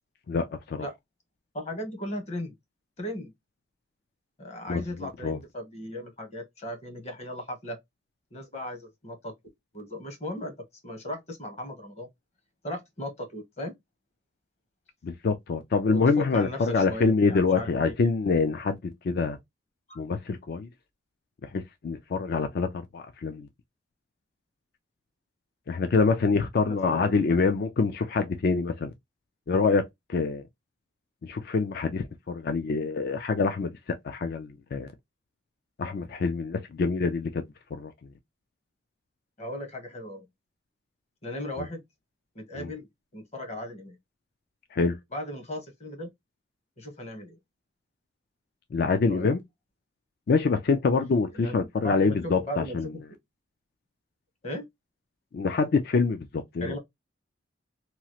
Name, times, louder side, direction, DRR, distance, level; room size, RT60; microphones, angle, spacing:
voice 1, 0.3-0.9 4.7-5.4 15.0-18.8 19.0-19.4 20.0-20.7 21.4-23.5 25.7-28.9 29.5-30.4 31.2-33.8 34.0-34.9 35.8-37.4 37.7-37.9 42.6-42.7 44.7-45.0 48.7-49.4 50.3-52.9 55.3-56.8, left 4 dB, 55° left, 0.4 m, -26 dB
voice 2, 1.5-2.5 3.0-3.3 4.4-7.8 8.3-9.3 9.7-10.5 10.8-12.1 12.6-13.7 15.9-18.1 19.9-20.0 26.6-27.4 39.4-40.3 41.2-41.8 42.3-42.9 43.1-44.0 45.1-46.1 46.8-47.4 49.0-49.3 51.3-53.0 54.4-54.6 56.6-56.8, left 1 dB, 35° left, 0.9 m, -37 dB
3.0 x 2.3 x 2.9 m
head